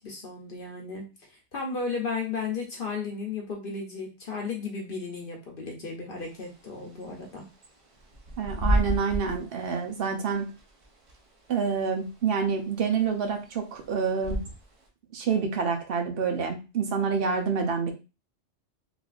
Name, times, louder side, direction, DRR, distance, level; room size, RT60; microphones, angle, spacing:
voice 1, 0.0-7.4, left 4 dB, 55° left, 1 dB, 0.8 m, -34 dB
Bird / Wind, 6.2-14.9, equal, 40° right, 0.5 m, -33 dB
voice 2, 8.4-10.5 11.5-14.4 15.1-17.9, right 6 dB, 60° right, 4 dB, 0.8 m, -27 dB
3.3 x 2.4 x 2.4 m, 0.29 s
omnidirectional pair, 1.2 m